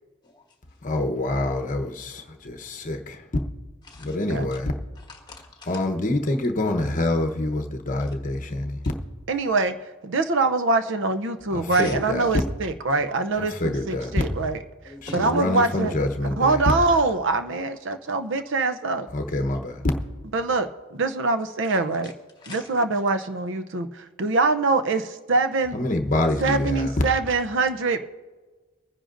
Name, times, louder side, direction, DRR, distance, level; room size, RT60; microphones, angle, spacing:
voice 1, 0.8-3.2 4.0-4.7 5.7-8.8 11.5-12.3 13.4-14.1 15.1-16.6 19.1-19.8 25.7-26.9, left 2 dB, 40° left, 0.9 m, -26 dB
voice 2, 3.8-4.2 4.9-5.8 8.0-8.1 11.7-11.9 14.8-15.5 21.6-21.8 22.0-22.7, left 3 dB, 20° left, 1.5 m, -42 dB
voice 3, 9.3-9.8 10.0-14.6 15.1-15.9 16.4-19.1 20.3-22.1 22.5-25.7 26.4-28.0, right 3 dB, 65° right, 0.6 m, -24 dB
23.5 x 10.0 x 2.6 m
head